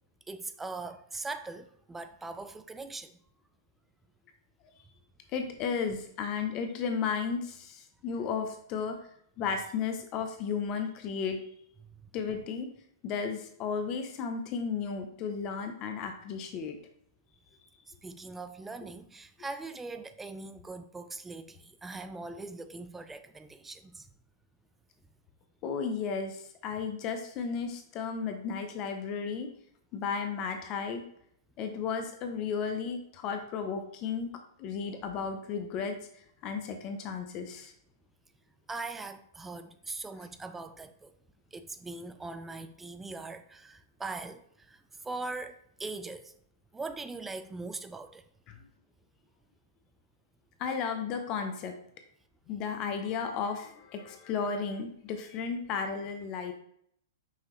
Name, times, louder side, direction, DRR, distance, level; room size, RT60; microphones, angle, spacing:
voice 1, 0.3-3.1 11.8-12.1 17.9-24.1 38.7-41.1 41.5-46.3 46.7-48.2, right 3 dB, 10° right, 0.3 m, -41 dB
voice 2, 5.3-9.0 9.4-11.4 12.1-12.7 13.0-16.8 25.6-29.5 29.9-31.0 31.6-34.3 34.6-37.7 48.5-48.6 50.6-51.7 52.5-56.5, left 6 dB, 35° left, 0.6 m, -34 dB
5.6 x 2.9 x 3.1 m
hypercardioid pair, 125°, 2 cm